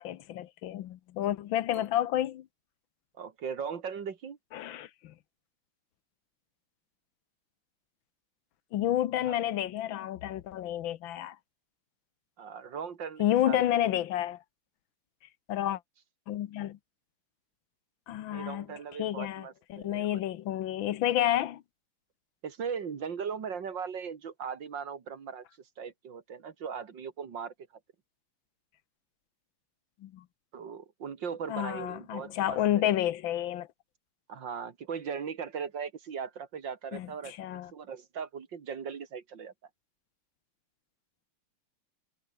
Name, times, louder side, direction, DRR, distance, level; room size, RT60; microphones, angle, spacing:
voice 1, 0.0-2.5 4.5-5.1 8.7-11.4 13.2-14.4 15.5-15.8 16.3-16.8 18.1-18.7 19.0-21.6 30.0-30.2 31.5-33.7 36.9-37.7, left 12 dB, 70° left, 1.5 m, -30 dB
voice 2, 3.2-4.4 9.3-9.4 12.4-13.9 18.3-20.2 22.4-25.5 25.8-27.5 30.5-33.1 34.3-39.5, right 6 dB, 55° right, 2.4 m, -39 dB
omnidirectional pair, 2.4 m